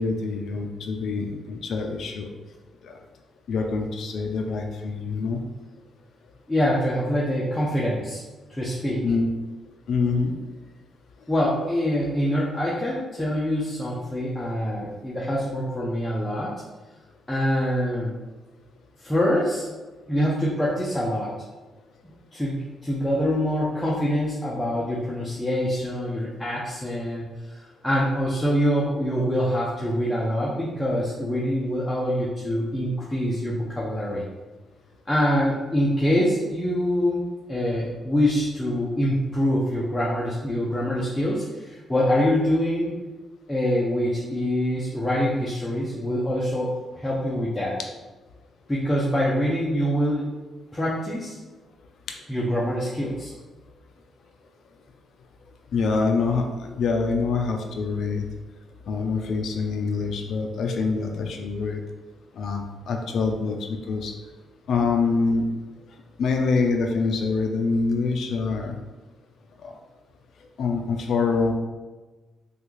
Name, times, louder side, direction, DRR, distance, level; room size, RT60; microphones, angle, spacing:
voice 1, 0.0-2.3 2.8-2.9 3.5-5.4 9.0-9.3 9.9-10.3 55.7-58.2 58.9-61.8 62.4-64.1 64.7-65.4 66.2-68.8 69.6-69.7 70.6-71.5, left 4 dB, 70° left, 3 dB, 0.4 m, -25 dB
voice 2, 6.5-8.2 8.5-9.0 11.3-16.6 17.3-18.1 19.0-19.7 20.1-21.3 22.3-22.6 22.8-34.3 35.1-43.0 43.5-47.8 48.7-50.3 50.7-51.4 52.3-53.3, equal, 10° left, -6 dB, 0.7 m, -25 dB
3.3 x 2.4 x 3.1 m, 1.2 s
cardioid pair, 70°, 0 cm